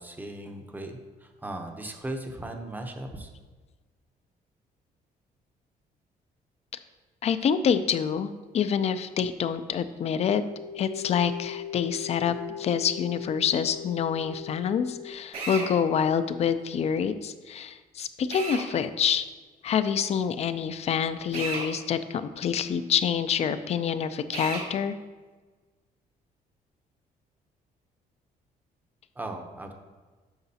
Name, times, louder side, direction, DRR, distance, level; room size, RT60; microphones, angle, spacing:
voice 1, 0.0-3.3 29.1-29.7, right 1 dB, 10° right, 4 dB, 0.7 m, -37 dB
voice 2, 7.2-8.3 8.5-10.4 10.8-19.2 19.6-24.9, left 7 dB, 40° left, 12 dB, 0.4 m, -27 dB
sound 1, 10.2-15.1, left 10 dB, 85° right, 0.7 m, -39 dB
Drill, 15.3-15.7 18.3-18.6 21.3-21.7 24.3-24.7, right 3 dB, 65° right, 2.3 m, -33 dB
9.5 x 5.9 x 2.8 m, 1.3 s
cardioid pair, 140°, 16 cm